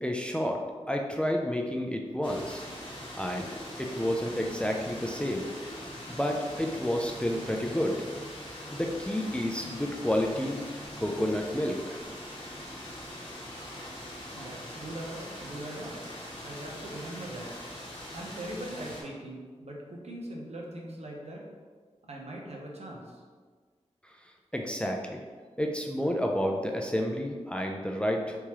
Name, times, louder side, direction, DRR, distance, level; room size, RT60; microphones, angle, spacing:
voice 1, 0.0-0.6 0.9-2.7 3.1-3.5 3.8-5.5 6.1-8.0 8.7-10.6 11.0-12.0 24.5-25.2 25.6-28.4, equal, 10° left, 1 dB, 0.4 m, -30 dB
sound 1, 2.2-19.0, left 1 dB, 45° left, 1.0 m, -42 dB
voice 2, 14.3-17.5 18.1-21.4 22.1-23.2, right 1 dB, 60° right, -1 dB, 0.7 m, -41 dB
3.5 x 3.0 x 2.9 m, 1.5 s
cardioid pair, 55°, 12 cm